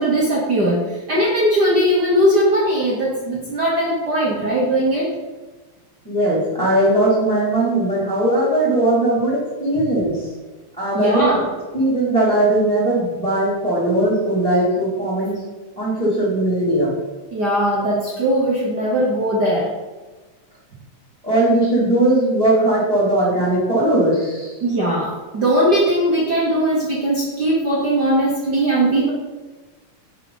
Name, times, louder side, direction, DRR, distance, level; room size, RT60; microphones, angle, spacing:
voice 1, 0.0-5.1 10.9-11.5 17.3-19.7 24.6-29.1, right 1 dB, 55° right, -4 dB, 1.2 m, -19 dB
voice 2, 6.0-10.3 10.8-11.4 11.7-15.4 15.8-17.0 21.2-24.6, right 1 dB, ahead, -7 dB, 1.8 m, -19 dB
9.8 x 4.9 x 3.9 m, 1.2 s
omnidirectional pair, 3.3 m